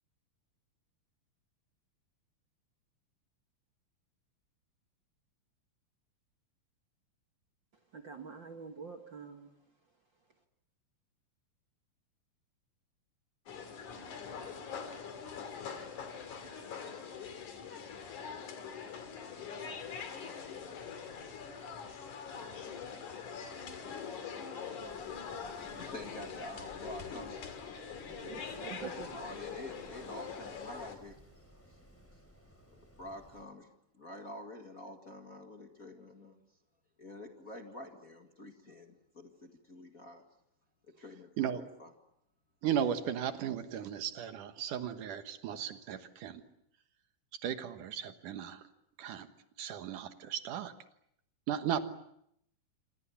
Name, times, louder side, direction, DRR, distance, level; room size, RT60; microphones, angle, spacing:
voice 1, 7.9-9.5 28.1-29.2, right 5 dB, 45° right, 5 dB, 1.7 m, -45 dB
sound 1, 13.5-31.0, left 6 dB, 65° left, 4.0 m, -43 dB
Wind, 24.8-33.4, equal, 5° left, 4.4 m, -58 dB
voice 2, 25.5-27.4 29.1-31.2 32.7-33.7 33.9-36.4 37.0-40.2 41.0-41.9, left 1 dB, 30° left, 4 dB, 1.8 m, -47 dB
voice 3, 42.6-46.4 47.4-48.6 49.0-49.3 49.6-50.7 51.5-51.8, right 9 dB, 70° right, 10 dB, 2.8 m, -35 dB
27.5 x 26.0 x 7.1 m, 0.73 s
omnidirectional pair, 3.8 m